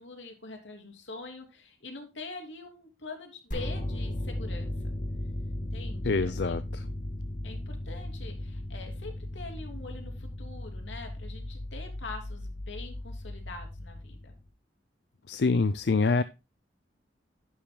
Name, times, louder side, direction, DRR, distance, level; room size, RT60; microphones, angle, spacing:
voice 1, 0.0-4.7 5.5-6.7 7.4-14.3, left 3 dB, 85° left, 4 dB, 3.0 m, -44 dB
sound 1, 3.5-14.5, left 1 dB, 45° left, 2.4 m, -36 dB
voice 2, 6.0-6.8 15.3-16.2, left 3 dB, 65° left, 14 dB, 0.5 m, -25 dB
11.0 x 10.5 x 2.2 m, 0.26 s
head